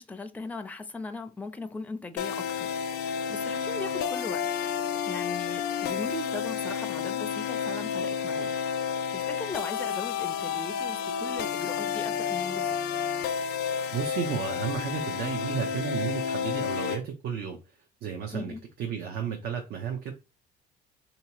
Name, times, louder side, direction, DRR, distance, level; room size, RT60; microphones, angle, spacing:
voice 1, 0.0-4.7 5.0-12.8 18.3-18.6, left 3 dB, 10° left, 0.4 m, -39 dB
sound 1, 2.2-17.0, left 7 dB, 80° left, 0.5 m, -31 dB
voice 2, 13.9-20.1, right 7 dB, 70° right, 0.7 m, -33 dB
3.7 x 2.9 x 2.9 m
cardioid pair, 110°, 17 cm